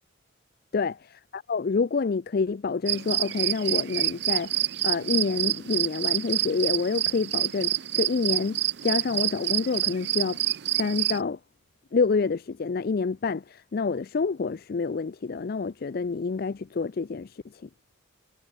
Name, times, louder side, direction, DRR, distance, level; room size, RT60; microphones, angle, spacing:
voice 1, 1.3-10.4 10.8-11.4 11.9-17.7, left 4 dB, 45° left, 0.4 m, -28 dB
sound 1, 2.9-11.2, right 13 dB, 55° right, 0.5 m, -27 dB
head